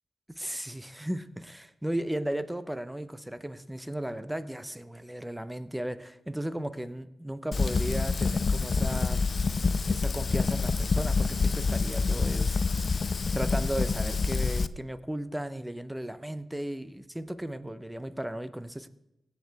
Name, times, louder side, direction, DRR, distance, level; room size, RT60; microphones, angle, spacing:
voice 1, 0.3-9.3 9.9-12.6 13.3-18.9, right 1 dB, 10° right, 12 dB, 0.9 m, -35 dB
Fire, 7.5-14.7, left 4 dB, 50° left, 0.4 m, -27 dB
16.5 x 8.3 x 3.5 m, 0.89 s
supercardioid pair, 45°, 0 cm